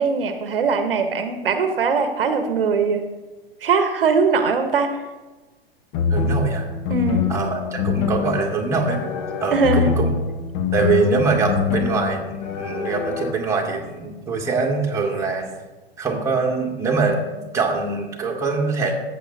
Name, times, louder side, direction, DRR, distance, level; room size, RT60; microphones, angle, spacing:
voice 1, 0.0-3.0 3.6-5.0 6.9-7.3 9.5-9.9, right 4 dB, 65° right, 7 dB, 1.0 m, -20 dB
sound 1, 5.9-13.3, left 5 dB, 35° left, 0.9 m, -24 dB
voice 2, 6.1-6.7 7.3-9.0 9.4-10.1 10.7-15.5 16.0-18.9, right 4 dB, 10° right, -1 dB, 1.7 m, -23 dB
14.0 x 8.2 x 2.7 m, 1.2 s
figure-of-eight pair, 105°, 31 cm